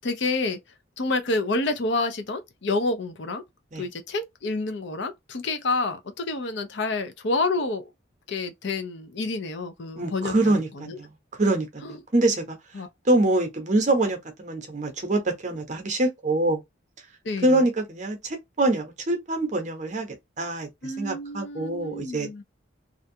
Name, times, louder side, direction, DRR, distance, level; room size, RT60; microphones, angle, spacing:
voice 1, 0.0-0.6 1.0-3.4 3.8-7.8 8.3-11.0 11.8-12.0 12.7-12.9 17.2-17.6 20.8-22.4, left 3 dB, 60° left, 0.5 m, -28 dB
voice 2, 10.0-11.1 11.4-12.6 13.1-16.6 17.4-22.4, right 2 dB, 35° right, 0.7 m, -25 dB
2.5 x 2.2 x 2.6 m
head